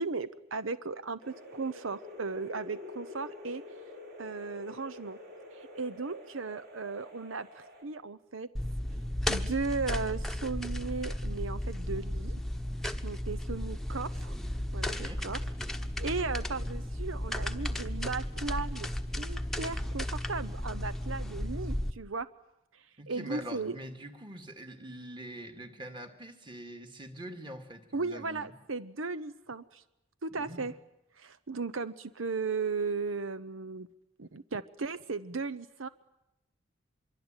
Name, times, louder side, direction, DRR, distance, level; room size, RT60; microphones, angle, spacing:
voice 1, 0.0-3.6 4.2-5.2 5.6-8.5 9.3-12.4 13.0-14.4 14.7-15.4 16.0-18.9 19.2-22.3 22.7-23.7 27.9-29.8 30.2-30.7 31.2-33.9 34.2-35.9, right 4 dB, 85° right, 14 dB, 0.9 m, -36 dB
sound 1, 1.2-7.8, left 2 dB, 55° right, 7.6 m, -48 dB
sound 2, 8.5-21.9, left 1 dB, ahead, 1.0 m, -34 dB
voice 2, 14.9-15.3 23.0-28.5 30.4-30.7, right 1 dB, 25° right, 6 dB, 2.2 m, -44 dB
25.5 x 23.5 x 9.1 m, 0.91 s
head